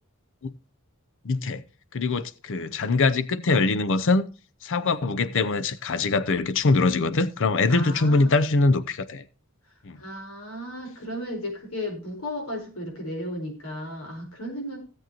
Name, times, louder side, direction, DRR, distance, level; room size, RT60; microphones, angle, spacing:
voice 1, 1.2-1.6 1.9-4.3 4.6-9.3 9.8-10.0, left 3 dB, 60° left, 0.6 m, -23 dB
voice 2, 7.7-8.4 10.0-14.8, left 1 dB, 85° left, 4.5 m, -34 dB
16.0 x 7.7 x 2.9 m
head